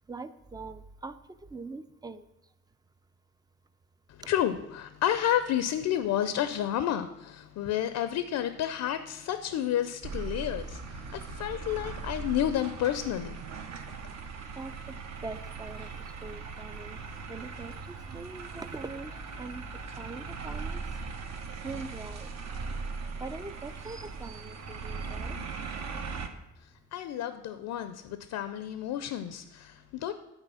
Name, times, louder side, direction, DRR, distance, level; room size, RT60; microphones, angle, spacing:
voice 1, 0.1-1.1 1.5-2.2 14.6-14.7 15.2-15.9 16.2-17.0 17.3-17.7 18.1-19.1 19.4-19.6 20.0-20.8 21.6-22.3 23.2-25.4, right 3 dB, 15° right, 13 dB, 0.3 m, -42 dB
voice 2, 4.1-13.4 26.6-30.1, left 11 dB, 70° left, 11 dB, 0.5 m, -31 dB
sound 1, 10.0-26.3, right 4 dB, 60° right, 0.9 m, -39 dB
8.1 x 4.0 x 5.5 m, 0.91 s
cardioid pair, 90°, 30 cm